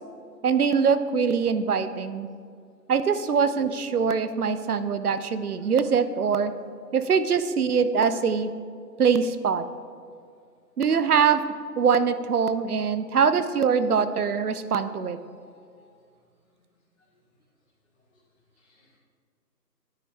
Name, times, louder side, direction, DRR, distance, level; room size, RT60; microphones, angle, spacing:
voice 1, 0.4-2.3 2.9-6.5 6.9-8.5 9.0-9.6 10.8-11.4 11.8-15.2, right 6 dB, 65° right, 12 dB, 0.7 m, -23 dB
voice 2, 15.4-15.9 18.1-18.2 18.6-19.0, left 3 dB, 45° left, -6 dB, 1.7 m, -60 dB
10.0 x 9.9 x 3.5 m, 2.3 s
hypercardioid pair, 165°, 50 cm